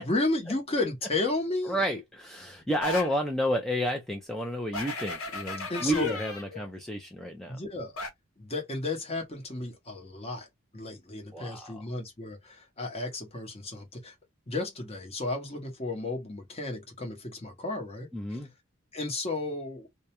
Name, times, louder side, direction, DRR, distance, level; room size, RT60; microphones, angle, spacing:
voice 1, 0.0-1.8 5.7-6.2 6.5-6.6 7.5-8.0 8.4-10.5 10.7-14.1 14.5-18.1 18.9-19.9, left 2 dB, 30° left, 0.8 m, -33 dB
voice 2, 1.6-7.6 11.3-11.9 18.1-18.5, equal, ahead, 0.4 m, -31 dB
sound 1, 2.8-3.2 4.7-6.5 8.0-8.1, left 2 dB, 85° left, 0.8 m, -35 dB
2.3 x 2.1 x 2.8 m
head